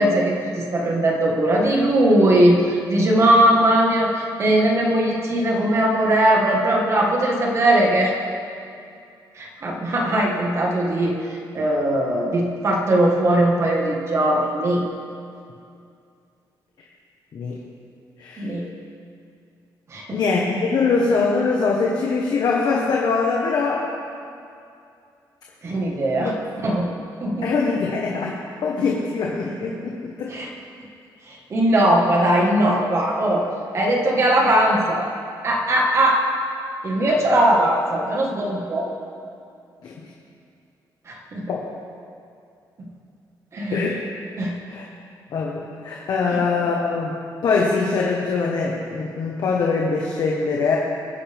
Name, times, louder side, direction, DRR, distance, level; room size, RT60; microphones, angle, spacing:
voice 1, 0.0-8.2 9.3-14.8 18.4-18.7 19.9-20.2 25.6-26.3 26.6-26.9 27.2-27.5 30.3-30.5 31.3-33.5 33.7-35.1 35.4-36.3 36.8-38.9 41.1-41.5 42.8-42.9 43.5-43.9 44.4-44.6 46.3-46.4, right 1 dB, 35° right, -1 dB, 1.8 m, -19 dB
voice 2, 18.2-18.5 20.1-23.9 27.4-30.3 39.8-39.9 41.5-41.6 43.7-44.0 44.7-44.8 45.3-50.8, left 4 dB, 60° left, -2 dB, 1.4 m, -23 dB
22.0 x 9.9 x 3.6 m, 2.4 s
cardioid pair, 165°, 8 cm